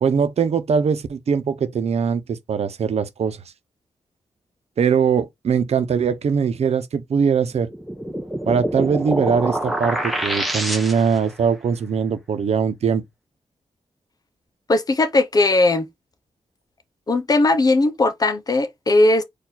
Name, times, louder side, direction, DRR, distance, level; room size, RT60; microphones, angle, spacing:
voice 1, 0.0-3.4 4.8-7.7 8.5-13.0, right 6 dB, 70° right, 0.9 m, -21 dB
sound 1, 7.7-11.3, right 1 dB, ahead, 1.2 m, -26 dB
voice 2, 14.7-15.9 17.1-19.2, left 2 dB, 35° left, 1.0 m, -18 dB
4.6 x 2.7 x 4.1 m
wide cardioid pair, 120°, 11 cm